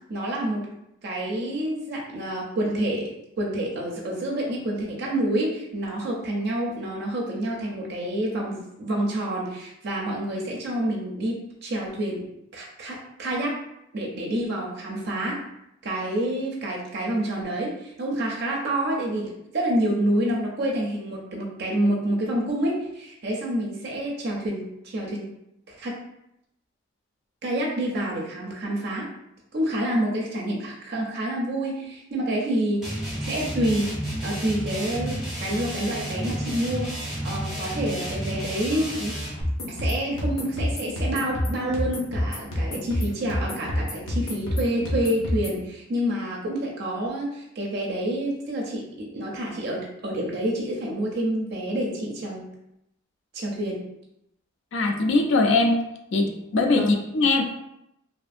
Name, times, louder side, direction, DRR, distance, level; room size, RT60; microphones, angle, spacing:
voice 1, 0.1-0.7 1.0-12.2 12.5-13.6 13.9-15.5 15.8-25.3 25.7-26.0 27.4-29.1 29.5-33.9 34.2-39.1 39.7-52.5 53.3-53.9 56.7-56.9, right 1 dB, 50° right, -2 dB, 0.5 m, -28 dB
sound 1, 32.8-39.4, equal, ahead, 0.6 m, -31 dB
sound 2, 39.4-45.6, left 1 dB, 80° left, 0.8 m, -28 dB
voice 2, 54.7-55.8 56.1-57.4, left 3 dB, 60° left, 4 dB, 0.4 m, -21 dB
2.5 x 2.5 x 2.5 m, 0.82 s
head